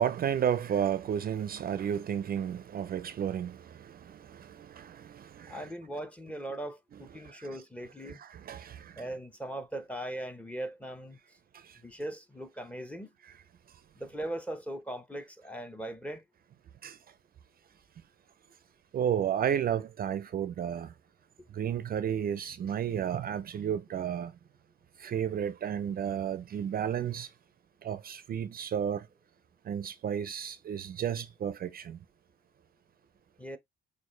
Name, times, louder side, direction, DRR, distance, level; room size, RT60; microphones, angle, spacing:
voice 1, 0.0-5.7 7.2-7.5 8.1-9.0 11.5-11.8 16.8-17.0 18.9-20.9 21.5-24.3 25.0-27.3 27.8-29.1 29.6-32.0, right 9 dB, 50° right, 0.4 m, -32 dB
voice 2, 5.5-8.2 9.0-11.2 11.8-13.1 14.0-16.2 33.4-33.6, right 1 dB, 5° left, 0.9 m, -39 dB
6.2 x 2.5 x 3.1 m
cardioid pair, 90°, 20 cm